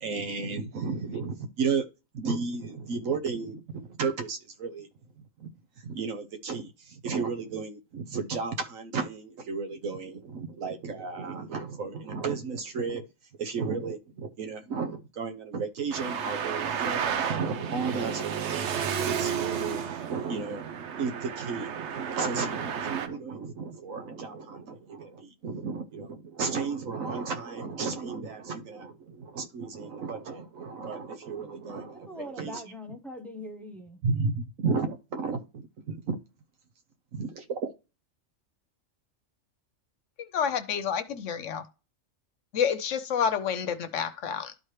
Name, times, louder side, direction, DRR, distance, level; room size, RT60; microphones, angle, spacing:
voice 1, 0.0-1.8 2.1-4.9 5.4-5.5 5.8-13.1 13.4-32.6 34.0-36.2 37.1-37.7, right 4 dB, 80° right, 1.3 m, -33 dB
Traffic noise roadway noise, 15.9-23.1, right 7 dB, 65° right, 1.0 m, -32 dB
voice 2, 31.9-34.0, left 1 dB, ahead, 0.7 m, -41 dB
voice 3, 40.2-41.6 42.5-44.6, left 7 dB, 70° left, 1.1 m, -29 dB
12.0 x 4.4 x 3.2 m
omnidirectional pair, 1.4 m